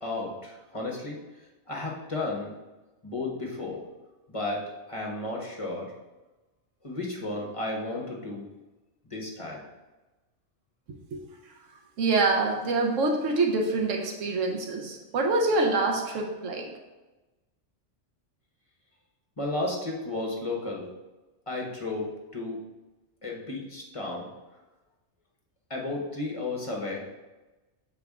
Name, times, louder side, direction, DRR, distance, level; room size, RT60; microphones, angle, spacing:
voice 1, 0.0-1.2 1.7-2.5 3.0-3.8 4.3-5.9 6.8-8.5 9.0-9.6 19.4-20.9 21.5-22.6 23.2-24.3 25.7-27.0, left 2 dB, 30° left, -1 dB, 1.0 m, -33 dB
voice 2, 12.0-16.7, right 3 dB, 90° right, 2 dB, 1.2 m, -25 dB
6.9 x 4.6 x 3.6 m, 1.1 s
omnidirectional pair, 1.3 m